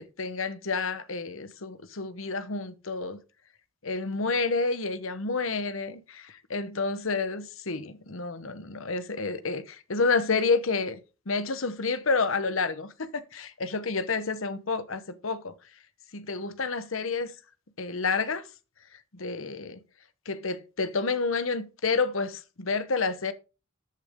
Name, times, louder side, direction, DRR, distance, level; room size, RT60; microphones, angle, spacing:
voice 1, 0.0-3.2 3.8-11.0 11.3-15.5 16.1-17.3 17.8-18.5 19.1-19.8 20.3-23.3, left 4 dB, 70° left, 1.1 m, -29 dB
13.5 x 8.3 x 3.7 m
head